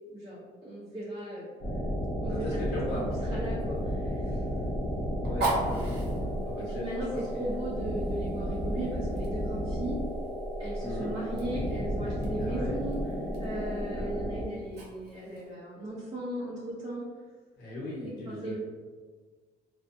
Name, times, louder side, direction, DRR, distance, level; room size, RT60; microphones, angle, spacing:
voice 1, 0.1-1.5 2.2-2.6 2.9-4.5 5.7-10.0 10.6-17.1 18.2-18.6, right 1 dB, 25° right, -8 dB, 0.6 m, -37 dB
sound 1, 1.6-14.5, equal, 25° left, 0.6 m, -33 dB
voice 2, 2.3-3.0 5.2-6.0 6.4-7.5 10.8-11.1 12.4-12.8 13.9-14.2 17.6-18.6, left 2 dB, 85° left, -5 dB, 1.1 m, -38 dB
Fire, 2.3-15.5, right 2 dB, 80° right, 1.1 m, -41 dB
2.5 x 2.2 x 2.6 m, 1.5 s
cardioid pair, 110°, 17 cm